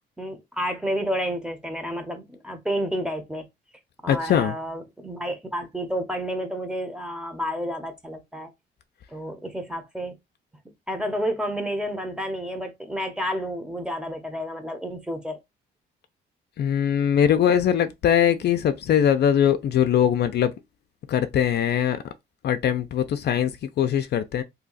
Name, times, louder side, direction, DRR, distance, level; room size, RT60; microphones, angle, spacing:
voice 1, 0.2-3.4 4.0-8.5 9.1-10.2 10.9-15.4, equal, 5° right, 0.9 m, -30 dB
voice 2, 4.1-4.5 16.6-20.5 21.1-22.0 22.4-24.4, left 9 dB, 60° left, 0.4 m, -21 dB
2.8 x 2.3 x 3.9 m
cardioid pair, 90°, 20 cm